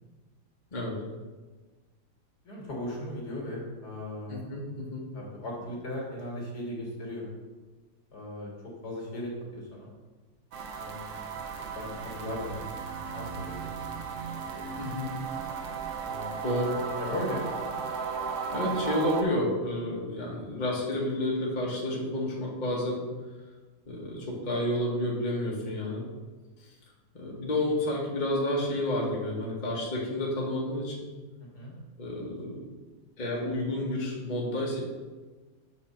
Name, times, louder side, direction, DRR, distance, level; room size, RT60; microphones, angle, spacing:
voice 1, 2.4-4.4 5.1-7.3 8.1-8.5 8.8-9.9 10.8-11.4 11.7-12.7 13.1-13.7 14.3-14.8 16.0-16.5 17.0-17.4 31.4-31.8, left 1 dB, 70° left, -2 dB, 2.4 m, -37 dB
voice 2, 4.3-5.1 14.8-15.1 16.4-16.7 18.5-23.0 23.9-26.0 27.1-31.0 32.0-32.6 33.2-34.8, left 1 dB, 30° left, -4 dB, 1.3 m, -30 dB
laser surgery, 10.5-19.2, right 6 dB, 55° right, 0.9 m, -35 dB
7.7 x 3.7 x 5.7 m, 1.3 s
omnidirectional pair, 1.8 m